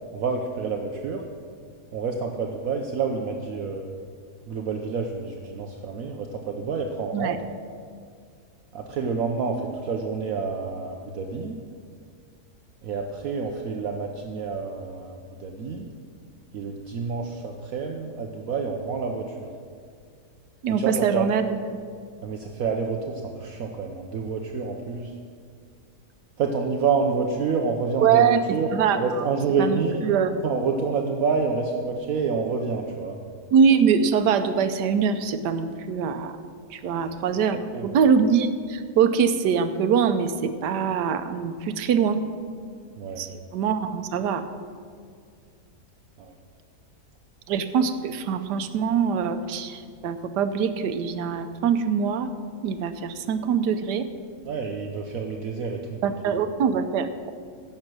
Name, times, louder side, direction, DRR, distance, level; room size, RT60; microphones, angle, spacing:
voice 1, 0.1-1.2 1.9-3.9 4.5-7.4 8.7-11.6 12.8-15.9 16.5-19.5 20.7-21.3 22.2-25.1 26.4-30.0 30.4-33.2 36.8-37.1 37.5-38.0 43.0-43.3 46.2-46.3 54.4-56.0, right 5 dB, 60° right, 2 dB, 1.2 m, -28 dB
voice 2, 20.6-21.4 28.0-28.4 28.7-29.2 29.6-30.3 33.5-36.4 36.7-42.2 43.2-44.4 47.5-52.3 52.6-54.1 56.0-57.3, right 7 dB, 85° right, 10 dB, 1.4 m, -23 dB
16.0 x 6.7 x 6.1 m, 2.1 s
omnidirectional pair, 1.7 m